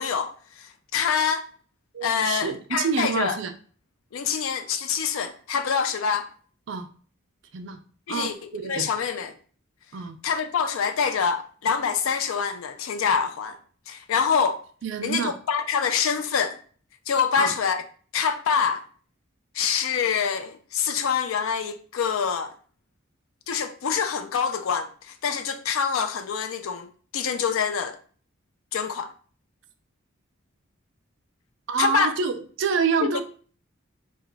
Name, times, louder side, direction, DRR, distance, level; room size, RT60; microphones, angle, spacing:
voice 1, 0.0-1.5 2.0-3.4 4.1-6.3 8.1-9.3 10.2-13.6 13.9-14.6 15.0-16.6 17.1-17.8 18.1-18.8 19.5-22.5 23.5-26.9 27.1-28.0 28.7-29.1 31.8-32.1 33.0-33.2, left 6 dB, 80° left, 0.4 m, -25 dB
voice 2, 1.9-3.5 4.3-4.4 6.7-6.9 7.5-7.8 8.1-8.9 9.9-10.2 14.8-15.3 17.4-17.5 31.7-33.2, right 5 dB, 65° right, 0.4 m, -27 dB
2.3 x 2.2 x 3.8 m
head